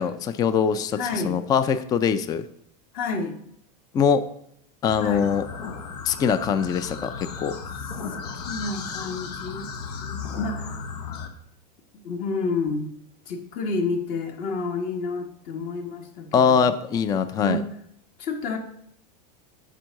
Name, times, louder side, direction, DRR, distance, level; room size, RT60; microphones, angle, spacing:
voice 1, 0.0-2.5 3.9-4.3 4.8-5.4 6.1-7.6 16.3-17.6, left 7 dB, 20° left, 12 dB, 0.4 m, -22 dB
voice 2, 1.0-1.4 2.9-3.4 5.0-5.3 7.8-9.7 10.0-10.8 12.0-12.9 13.3-16.7 17.4-17.6 18.2-18.6, left 3 dB, 45° left, 5 dB, 1.4 m, -30 dB
sound 1, 4.9-11.3, left 5 dB, 85° left, 1.1 m, -35 dB
7.6 x 4.5 x 6.3 m, 0.70 s
supercardioid pair, 145°, 20 cm